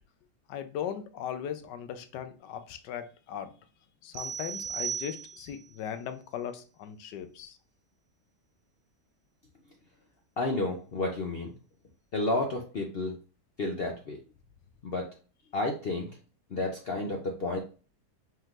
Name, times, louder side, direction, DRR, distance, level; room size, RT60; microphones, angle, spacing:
voice 1, 0.5-3.5 4.0-7.6, left 9 dB, 90° left, 9 dB, 1.3 m, -38 dB
sound 1, 4.1-5.7, right 7 dB, 70° right, 1.0 m, -36 dB
voice 2, 10.4-11.5 12.1-13.1 13.6-14.2 14.8-15.1 15.5-16.1 16.5-17.6, left 2 dB, 65° left, 2 dB, 0.6 m, -31 dB
5.3 x 3.7 x 2.4 m, 0.36 s
omnidirectional pair, 1.8 m